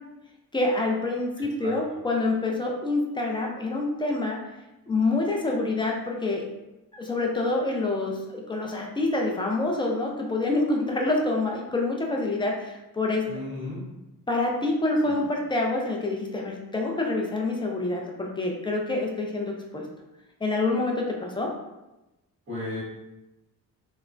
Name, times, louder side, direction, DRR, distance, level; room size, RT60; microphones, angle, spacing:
voice 1, 0.5-4.4 4.9-6.5 6.9-13.3 14.3-19.9 20.4-21.5, left 2 dB, 15° left, 0 dB, 0.4 m, -27 dB
voice 2, 13.3-13.9 15.0-15.3 22.5-22.8, left 2 dB, 30° right, -8 dB, 1.3 m, -35 dB
3.2 x 2.0 x 2.4 m, 0.98 s
cardioid pair, 115°, 38 cm